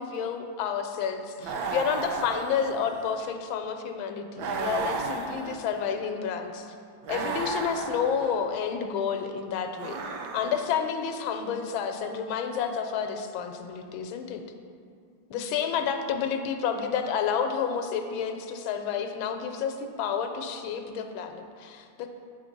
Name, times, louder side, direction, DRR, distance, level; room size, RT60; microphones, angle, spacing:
voice 1, 0.0-6.7 7.1-10.0 10.3-14.4 15.3-22.1, left 7 dB, 85° left, 6 dB, 1.4 m, -30 dB
sound 1, 1.4-3.2 4.4-5.9 7.0-8.4 9.7-10.9, right 3 dB, 70° right, 0.9 m, -34 dB
7.5 x 3.8 x 5.1 m, 2.3 s
omnidirectional pair, 2.1 m